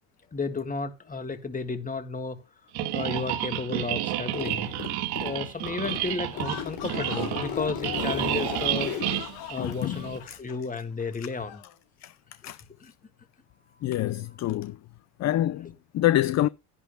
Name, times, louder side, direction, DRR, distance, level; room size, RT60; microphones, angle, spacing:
voice 1, 0.3-4.7 5.2-8.9 9.5-11.6 12.8-12.9, left 4 dB, 20° left, 1.8 m, -33 dB
sound 1, 2.7-10.2, right 12 dB, 65° right, 2.0 m, -30 dB
Zipper (clothing), 4.3-5.4 5.7-10.4, left 8 dB, 55° left, 3.7 m, -35 dB
sound 2, 6.3-11.8, left 13 dB, 85° left, 2.6 m, -42 dB
voice 2, 9.6-10.4 12.0-12.1 12.4-12.6 13.8-14.8 15.2-16.5, left 13 dB, 40° left, 0.5 m, -27 dB
12.5 x 11.0 x 2.2 m
supercardioid pair, 100°, 42 cm